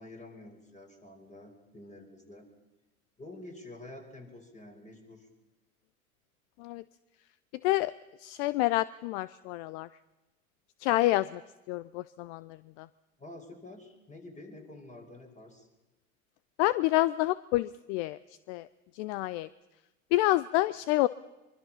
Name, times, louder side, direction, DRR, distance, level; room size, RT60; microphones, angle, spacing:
voice 1, 0.0-2.5 3.2-5.3 13.2-15.7, left 2 dB, 15° left, 3 dB, 5.6 m, -48 dB
voice 2, 8.2-9.9 10.8-11.4 11.7-12.9 16.6-18.2 18.5-18.7 19.0-19.5 20.1-21.1, left 18 dB, 55° left, 18 dB, 0.7 m, -28 dB
24.0 x 23.5 x 5.7 m, 1.1 s
hypercardioid pair, 80°, 42 cm